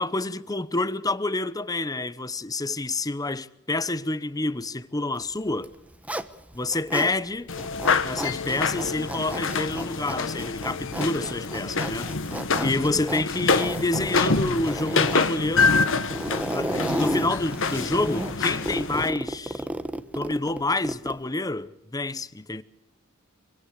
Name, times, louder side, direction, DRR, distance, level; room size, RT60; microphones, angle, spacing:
voice 1, 0.0-5.7 6.5-7.5 8.0-12.1 12.6-15.8 16.5-19.7 20.1-22.6, left 2 dB, 15° left, 0.9 m, -28 dB
Zipper (clothing), 5.5-7.1 7.5-21.3, right 1 dB, 5° right, 1.1 m, -33 dB
sound 1, 7.5-19.1, left 4 dB, 60° left, 1.7 m, -26 dB
26.0 x 25.0 x 6.7 m
head